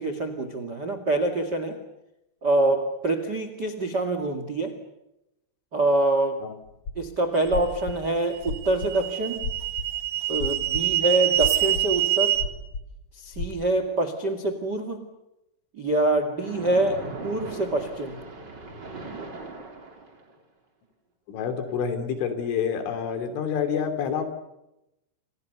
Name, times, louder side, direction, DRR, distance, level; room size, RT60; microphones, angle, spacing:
voice 1, 0.0-1.8 2.4-4.7 5.7-6.4 6.9-9.5 10.3-12.4 13.2-15.0 15.7-18.2, right 2 dB, 55° right, 9 dB, 1.1 m, -25 dB
sound 1, 6.7-7.0 7.4-8.9 9.4-9.9 10.3-10.9 11.4-12.0 12.3-12.9 13.3-13.5, left 4 dB, 30° left, 4.2 m, -32 dB
sound 2, 7.4-7.5 8.3-12.4, right 13 dB, 85° right, 4.8 m, -25 dB
Splash splatter, 16.3-20.4, right 3 dB, 25° right, 3.5 m, -39 dB
voice 2, 21.3-24.2, left 7 dB, 70° left, 8 dB, 5.3 m, -28 dB
29.5 x 27.5 x 6.9 m, 0.90 s
omnidirectional pair, 5.9 m